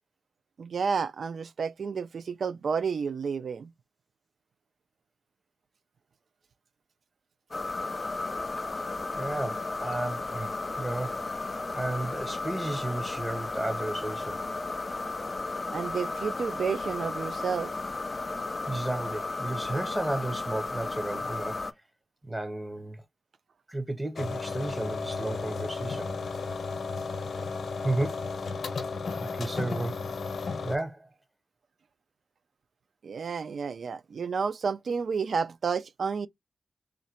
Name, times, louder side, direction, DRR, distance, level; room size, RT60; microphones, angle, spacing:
voice 1, 0.6-3.7 15.7-17.7 33.0-36.3, right 5 dB, 75° right, 0.4 m, -31 dB
sound 1, 7.5-21.7, left 3 dB, 30° left, 0.4 m, -34 dB
voice 2, 9.1-14.4 18.7-21.6 22.2-23.0 23.7-26.2 27.8-28.2 29.2-30.1 30.6-31.1, right 2 dB, 15° right, 0.6 m, -33 dB
sound 2, 24.2-30.8, left 4 dB, 80° left, 0.7 m, -34 dB
3.8 x 2.1 x 4.3 m
wide cardioid pair, 135°, 0 cm